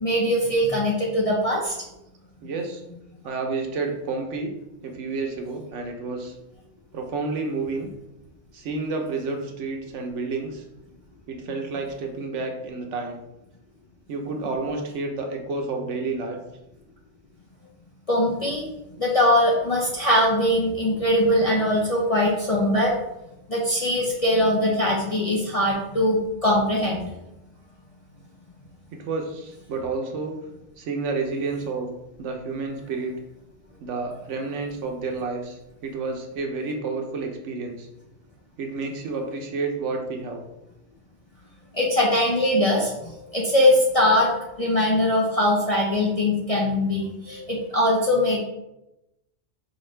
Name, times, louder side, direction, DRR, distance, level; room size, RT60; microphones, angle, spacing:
voice 1, 0.0-1.7 18.1-18.6 19.0-22.9 23.5-27.1 41.7-48.4, left 1 dB, 45° left, -3 dB, 0.5 m, -21 dB
voice 2, 2.4-2.8 3.2-4.5 4.8-6.3 6.9-7.9 8.5-10.6 11.3-13.2 14.1-16.4 28.9-30.4 30.8-31.9 32.2-33.2 33.8-37.9 38.6-40.4, right 3 dB, 70° right, 3 dB, 1.0 m, -30 dB
4.9 x 2.5 x 3.1 m, 0.90 s
omnidirectional pair, 1.3 m